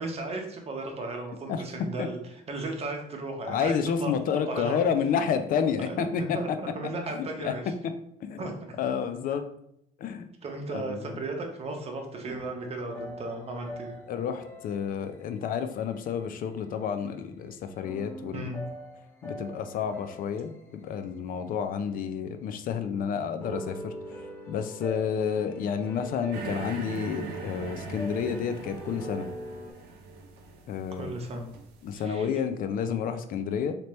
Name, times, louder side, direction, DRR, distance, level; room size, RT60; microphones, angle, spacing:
voice 1, 0.0-4.8 5.9-7.7 8.4-8.8 10.4-14.0 18.3-18.5 31.0-31.5 31.9-32.3, right 2 dB, 35° right, 3 dB, 0.8 m, -35 dB
voice 2, 3.5-6.4 7.1-7.5 7.8-7.9 8.2-8.4 8.8-9.5 10.0-10.3 10.7-11.2 14.1-18.4 19.2-23.9 24.5-29.3 30.7-31.1 31.8-33.8, left 7 dB, 55° left, 9 dB, 0.4 m, -30 dB
sound 1, 12.2-16.7 17.8-21.9 23.4-29.7, equal, 15° left, 0.7 m, -43 dB
sound 2, 26.3-31.9, right 4 dB, 80° right, 0.6 m, -40 dB
3.2 x 2.9 x 3.0 m, 0.75 s
cardioid pair, 110°, 17 cm